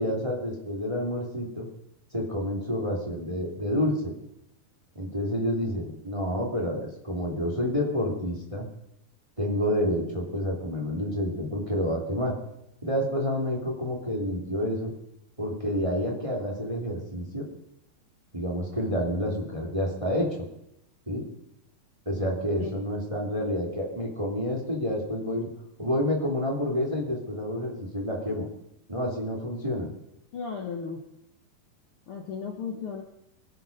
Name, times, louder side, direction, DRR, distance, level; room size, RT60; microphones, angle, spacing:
voice 1, 0.0-1.7 2.1-4.1 4.9-8.7 9.4-12.3 12.8-14.9 15.4-17.4 18.3-20.3 21.1-21.2 22.0-25.5 25.8-28.4 28.9-29.9, equal, 10° right, -1 dB, 2.2 m, -29 dB
voice 2, 30.3-31.0 32.1-33.0, left 5 dB, 80° left, 2 dB, 1.2 m, -35 dB
24.0 x 8.3 x 5.4 m, 0.81 s
omnidirectional pair, 4.5 m